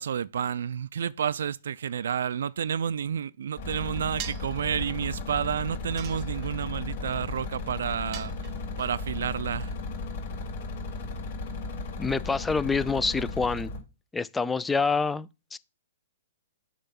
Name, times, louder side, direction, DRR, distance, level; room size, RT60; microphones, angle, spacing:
voice 1, 0.0-8.3 8.8-9.7, right 8 dB, 75° right, 0.4 m, -30 dB
sound 1, 3.6-13.8, left 3 dB, 55° left, 3.1 m, -35 dB
sound 2, 4.2-4.6 6.0-6.7 8.1-8.9, right 12 dB, 35° right, 0.7 m, -41 dB
voice 2, 12.0-13.7 14.1-15.6, left 4 dB, 10° left, 0.3 m, -27 dB
6.6 x 3.1 x 5.9 m
hypercardioid pair, 130°, 0 cm